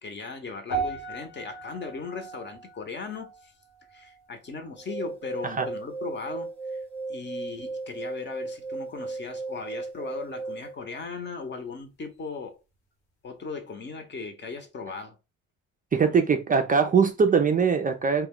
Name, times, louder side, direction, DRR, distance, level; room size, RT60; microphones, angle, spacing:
voice 1, 0.0-3.5 3.9-6.8 7.1-12.6 13.2-15.2, left 4 dB, 35° left, 0.8 m, -38 dB
sound 1, 0.7-5.1 5.4-5.7 6.4-6.5, right 4 dB, 90° left, 1.1 m, -38 dB
sound 2, 4.8-10.8, right 3 dB, 5° left, 0.7 m, -36 dB
voice 2, 15.9-18.3, right 5 dB, 30° right, 0.4 m, -22 dB
2.2 x 2.2 x 3.6 m
cardioid pair, 90°, 30 cm